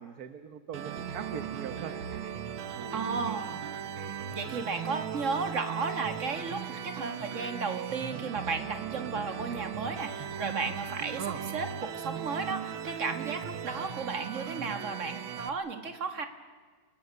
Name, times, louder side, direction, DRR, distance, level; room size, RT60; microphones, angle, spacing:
voice 1, 0.0-1.9 2.7-3.4 4.5-4.7 11.2-11.4, right 8 dB, 55° right, 9 dB, 1.3 m, -40 dB
sound 1, 0.7-15.5, right 8 dB, 75° right, 1.9 m, -38 dB
voice 2, 2.9-3.6 4.3-16.3, right 4 dB, 35° right, 7 dB, 2.2 m, -34 dB
29.5 x 20.5 x 6.7 m, 1.5 s
omnidirectional pair, 2.3 m